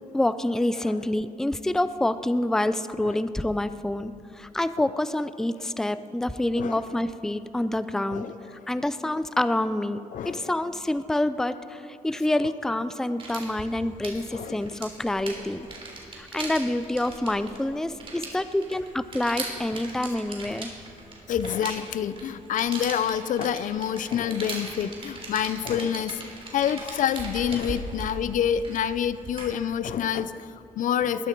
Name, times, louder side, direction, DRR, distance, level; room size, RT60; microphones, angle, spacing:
voice 1, 0.1-8.3 8.7-15.7 16.1-20.7, left 1 dB, 5° left, 13 dB, 0.4 m, -27 dB
voice 2, 10.1-10.5 14.3-14.6 15.3-15.4 21.3-31.3, left 9 dB, 65° left, 15 dB, 0.6 m, -27 dB
sound 1, 13.2-29.6, right 3 dB, 40° right, 3.5 m, -39 dB
20.5 x 12.0 x 4.6 m, 2.7 s
cardioid pair, 100°, 14 cm